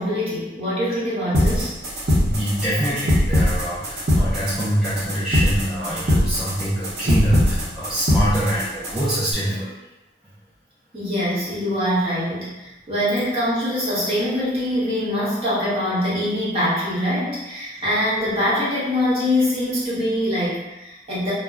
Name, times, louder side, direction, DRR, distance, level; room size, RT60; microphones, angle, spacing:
voice 1, 0.0-1.7 10.9-21.3, left 1 dB, 35° right, -9 dB, 1.1 m, -23 dB
sound 1, 1.3-9.3, left 1 dB, 60° right, 0.8 m, -21 dB
voice 2, 2.1-9.7, equal, 5° right, -12 dB, 0.5 m, -25 dB
2.2 x 2.1 x 3.6 m, 1.0 s
head